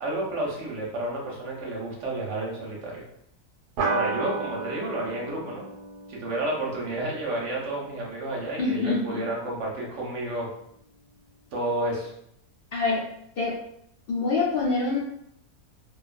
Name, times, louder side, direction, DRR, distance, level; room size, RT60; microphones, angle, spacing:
voice 1, 0.0-3.0 3.9-5.6 6.1-10.5 11.5-12.1, right 1 dB, 60° right, -2 dB, 0.9 m, -31 dB
sound 1, 3.8-8.7, right 4 dB, 90° right, 1.1 m, -34 dB
voice 2, 8.6-9.2 12.7-13.0 13.4-13.6 14.1-15.0, left 3 dB, 70° left, -6 dB, 0.5 m, -25 dB
2.6 x 2.3 x 2.4 m, 0.74 s
omnidirectional pair, 1.7 m